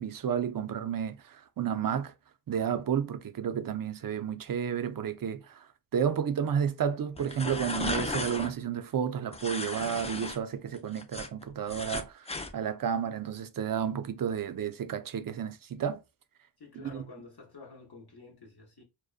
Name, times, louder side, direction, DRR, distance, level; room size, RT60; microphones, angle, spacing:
voice 1, 0.0-2.1 2.5-5.7 5.9-16.0 16.7-17.0, right 8 dB, 50° right, 0.4 m, -31 dB
sound 1, 7.1-8.5 9.3-10.4 10.7-12.5, left 2 dB, 15° left, 0.3 m, -35 dB
voice 2, 16.6-18.8, left 4 dB, 55° left, 0.7 m, -50 dB
2.6 x 2.1 x 2.4 m
wide cardioid pair, 50°, 46 cm